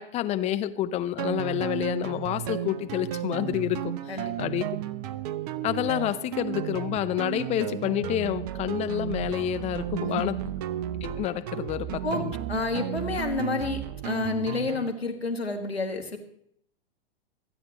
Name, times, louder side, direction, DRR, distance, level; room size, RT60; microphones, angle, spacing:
voice 1, 0.0-4.6 5.6-10.3 11.0-12.3, left 12 dB, 20° left, 11 dB, 0.7 m, -29 dB
sound 1, 1.2-14.9, right 11 dB, 40° right, 0.7 m, -33 dB
voice 2, 10.0-10.5 11.9-12.2 12.5-16.2, left 3 dB, 90° left, 3 dB, 2.0 m, -30 dB
26.0 x 9.0 x 3.0 m, 0.68 s
figure-of-eight pair, 105°, 30 cm